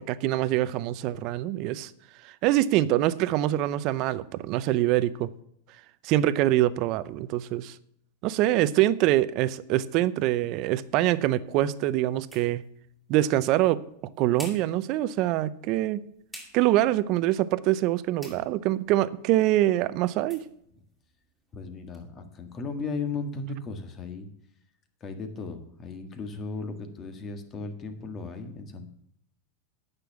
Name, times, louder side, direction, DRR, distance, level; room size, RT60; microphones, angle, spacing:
voice 1, 0.0-1.9 2.2-5.3 6.0-7.8 8.2-12.6 13.1-13.8 14.2-16.0 16.5-20.4, right 14 dB, 45° right, 17 dB, 0.6 m, -24 dB
sound 1, 10.6-22.1, equal, ahead, 3.2 m, -52 dB
voice 2, 21.5-24.3 25.0-28.9, left 4 dB, 30° left, 7 dB, 1.7 m, -36 dB
9.4 x 6.8 x 7.1 m, 0.72 s
supercardioid pair, 130°, 0 cm